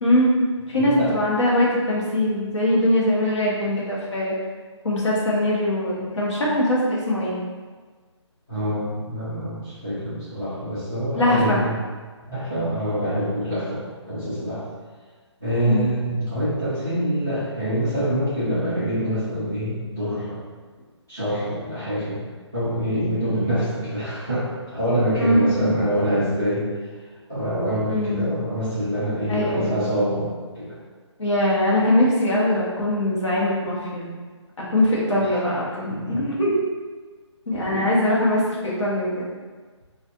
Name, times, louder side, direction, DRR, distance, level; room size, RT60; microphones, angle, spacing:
voice 1, 0.0-0.3 0.7-4.4 4.8-7.4 11.1-11.6 15.7-15.9 25.2-25.7 27.9-28.3 29.3-29.9 31.2-34.1 34.6-36.5 37.5-39.1, left 1 dB, 75° left, -6 dB, 1.3 m, -22 dB
voice 2, 0.7-1.1 8.5-11.7 12.3-13.8 14.1-14.6 15.4-20.4 21.1-22.2 22.5-26.6 27.3-30.3 30.5-30.8 35.3-35.4 35.9-36.2 37.7-37.8, equal, 5° left, -16 dB, 0.3 m, -25 dB
4.1 x 2.5 x 2.6 m, 1.4 s
hypercardioid pair, 175°, 15 cm